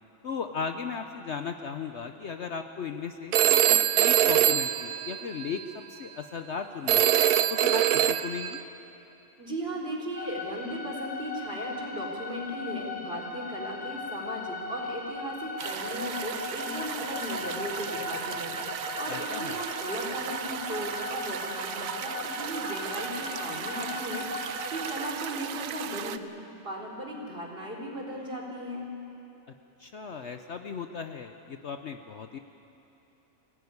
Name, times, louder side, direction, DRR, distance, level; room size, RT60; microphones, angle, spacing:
voice 1, 0.2-3.3 3.7-7.1 7.5-8.6 19.1-19.6 29.8-32.4, left 6 dB, 55° left, 6 dB, 0.9 m, -36 dB
Telephone, 3.3-5.7 6.9-8.6, right 11 dB, 90° right, 1.2 m, -23 dB
voice 2, 9.4-26.2 26.6-28.9, equal, 40° right, -3 dB, 4.0 m, -37 dB
sound 1, 10.1-25.1, left 3 dB, 15° right, 2.1 m, -38 dB
sound 2, 15.6-26.2, right 9 dB, 70° right, 1.1 m, -36 dB
23.5 x 16.5 x 9.5 m, 2.9 s
omnidirectional pair, 1.6 m